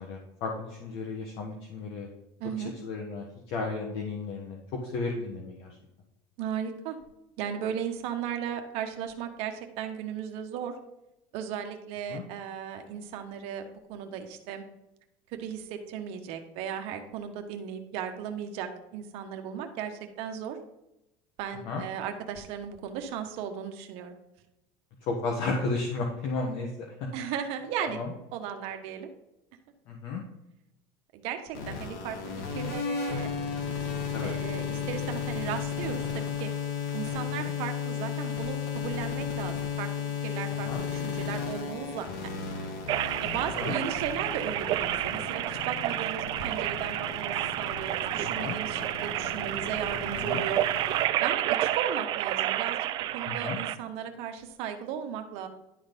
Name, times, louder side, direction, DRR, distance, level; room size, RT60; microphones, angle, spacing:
voice 1, 0.0-2.1 2.8-5.7 12.1-12.2 21.7-21.8 25.0-26.9 27.2-27.3 27.8-28.1 29.9-30.2 34.1-34.3 37.2-37.5 40.6-40.8 43.6-43.7 48.2-48.6 50.1-50.4 53.2-53.6, left 3 dB, 50° left, 1 dB, 1.3 m, -33 dB
voice 2, 2.4-2.7 6.4-7.0 7.4-10.7 11.3-14.6 15.3-20.6 21.4-24.1 27.1-28.0 28.3-29.1 31.1-32.2 32.5-33.3 34.2-36.5 36.9-39.9 40.2-42.1 43.2-50.6 51.2-52.8 53.1-55.5, right 8 dB, 60° right, 6 dB, 1.3 m, -36 dB
sound 1, 31.5-51.0, left 6 dB, 80° left, 1.8 m, -34 dB
sound 2, 42.9-53.7, right 13 dB, 40° right, 0.4 m, -30 dB
11.5 x 4.0 x 5.2 m, 0.89 s
cardioid pair, 155°, 12 cm